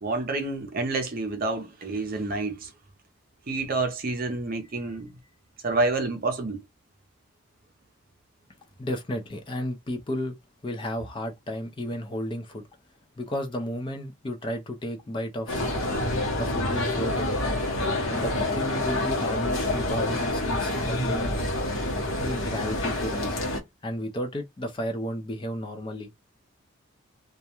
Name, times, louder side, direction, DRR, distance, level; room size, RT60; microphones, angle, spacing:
voice 1, 0.0-2.7 3.5-5.1 5.6-6.6, right 3 dB, 40° right, 0.5 m, -28 dB
voice 2, 8.8-10.4 10.6-12.6 13.2-16.0 16.4-17.6 18.1-21.4 22.2-23.4 23.8-26.1, equal, 25° left, 0.4 m, -33 dB
sound 1, 15.5-23.6, left 1 dB, 65° left, 0.9 m, -27 dB
2.3 x 2.1 x 2.8 m
head